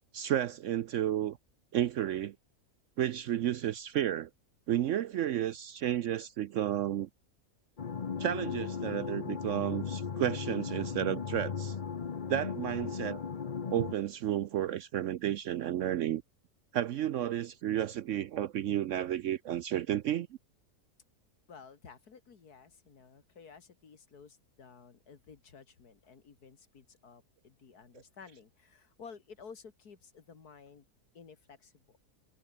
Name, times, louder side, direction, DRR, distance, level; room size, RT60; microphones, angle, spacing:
voice 1, 0.1-1.4 1.7-2.3 3.0-4.3 4.7-7.1 8.2-11.8 12.3-13.2 13.7-16.2 16.7-20.3, right 11 dB, 65° right, 0.8 m, -32 dB
sound 1, 7.8-13.9, left 6 dB, 35° left, 0.8 m, -37 dB
voice 2, 21.5-30.9 31.1-32.0, left 5 dB, 75° left, 2.6 m, -53 dB
omnidirectional pair, 1.7 m